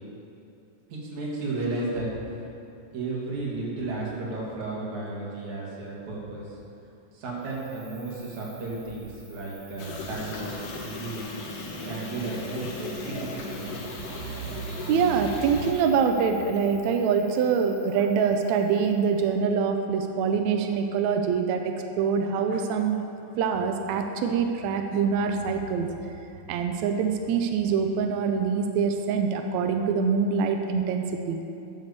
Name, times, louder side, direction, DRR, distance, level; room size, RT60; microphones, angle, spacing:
voice 1, 0.9-2.1 2.9-6.6 7.1-11.3 11.8-13.9, right 2 dB, 60° right, -4 dB, 3.0 m, -33 dB
Cricket, 7.4-19.3, right 3 dB, 40° right, 2.7 m, -52 dB
sound 1, 9.8-15.7, left 2 dB, 75° left, 2.7 m, -37 dB
voice 2, 14.0-23.0 23.4-25.9 26.5-31.4, right 6 dB, 85° right, 5 dB, 1.6 m, -25 dB
9.0 x 6.9 x 6.7 m, 2.7 s
omnidirectional pair, 3.9 m